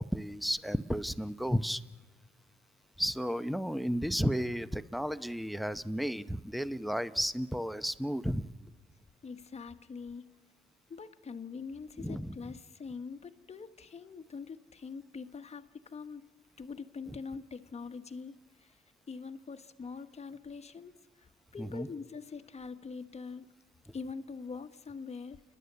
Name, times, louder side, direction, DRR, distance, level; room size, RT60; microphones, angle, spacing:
voice 1, 0.0-1.8 3.0-8.5 12.0-12.5 21.6-21.9, equal, ahead, 14 dB, 0.7 m, -33 dB
voice 2, 9.2-10.3 10.9-16.2 16.6-18.8 19.1-21.3 21.5-23.5 23.9-25.4, left 5 dB, 35° left, 9 dB, 1.2 m, -44 dB
29.5 x 11.0 x 9.6 m, 1.3 s
cardioid pair, 90°, 20 cm